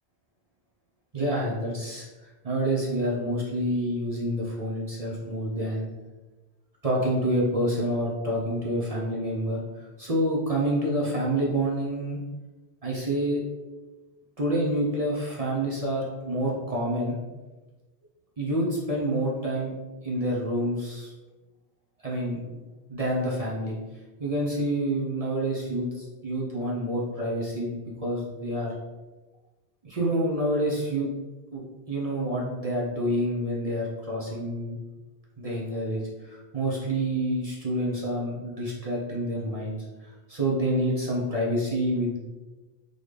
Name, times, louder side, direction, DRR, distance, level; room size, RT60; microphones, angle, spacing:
voice 1, 1.1-2.1 2.4-5.9 6.8-9.6 10.0-12.2 12.8-13.4 14.4-17.2 18.4-19.7 20.0-21.1 22.0-22.6 22.9-23.8 24.2-28.7 29.8-31.1 31.5-31.6 31.9-34.8 35.4-42.2, right 1 dB, 40° right, -4 dB, 0.8 m, -28 dB
3.9 x 3.5 x 3.2 m, 1.2 s
omnidirectional pair, 1.1 m